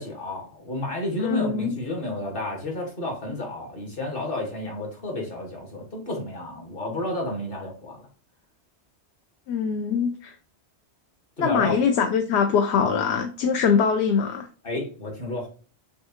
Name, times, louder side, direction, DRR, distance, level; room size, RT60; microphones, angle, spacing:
voice 1, 0.0-8.1 11.4-11.8 14.6-15.5, left 1 dB, 55° left, 1.7 m, -31 dB
voice 2, 1.2-1.7 9.5-10.3 11.4-14.5, left 6 dB, 75° left, 0.8 m, -23 dB
6.2 x 2.4 x 2.8 m
omnidirectional pair, 1.1 m